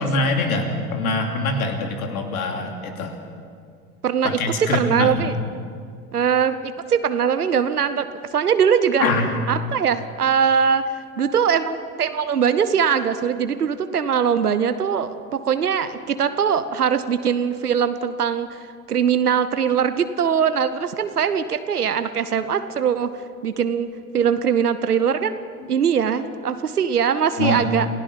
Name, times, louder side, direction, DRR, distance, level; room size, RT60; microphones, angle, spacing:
voice 1, 0.0-3.2 4.2-5.3 9.0-9.3 27.4-27.7, left 2 dB, 70° left, 4 dB, 2.8 m, -23 dB
voice 2, 4.0-4.4 4.7-5.3 6.1-8.1 8.3-9.1 9.5-23.1 23.4-25.3 25.7-27.9, right 7 dB, 85° right, 11 dB, 0.8 m, -21 dB
28.0 x 16.5 x 5.7 m, 2.2 s
figure-of-eight pair, 75°, 44 cm